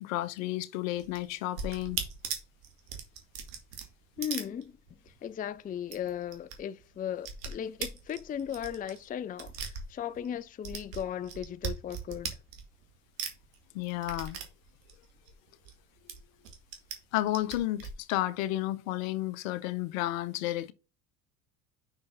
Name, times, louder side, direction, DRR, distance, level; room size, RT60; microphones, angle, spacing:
voice 1, 0.0-2.0 13.7-14.4 17.1-20.7, left 15 dB, 75° left, 0.8 m, -32 dB
sound 1, 1.0-5.2 5.4-5.5 5.8-6.6 6.8-10.3 10.6-12.9 13.2-15.8 16.1-17.0 17.3-17.9, right 6 dB, 80° right, 1.9 m, -39 dB
voice 2, 4.2-4.8 5.2-12.4, left 9 dB, 20° left, 0.4 m, -37 dB
5.9 x 5.3 x 3.9 m
hypercardioid pair, 75°, 40 cm